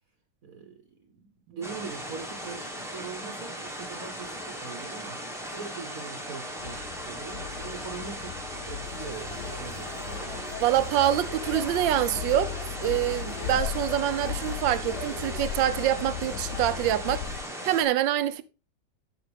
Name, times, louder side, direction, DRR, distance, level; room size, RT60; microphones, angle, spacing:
voice 1, 0.4-10.2, right 5 dB, 55° right, 1.2 m, -42 dB
sound 1, 1.6-17.8, equal, ahead, 0.9 m, -38 dB
sound 2, 6.6-17.4, left 11 dB, 75° left, 1.2 m, -38 dB
sound 3, 8.8-17.0, left 1 dB, 35° left, 2.2 m, -42 dB
voice 2, 10.6-12.5 12.8-18.4, right 12 dB, 85° right, 1.3 m, -26 dB
12.0 x 4.5 x 3.4 m
omnidirectional pair, 2.0 m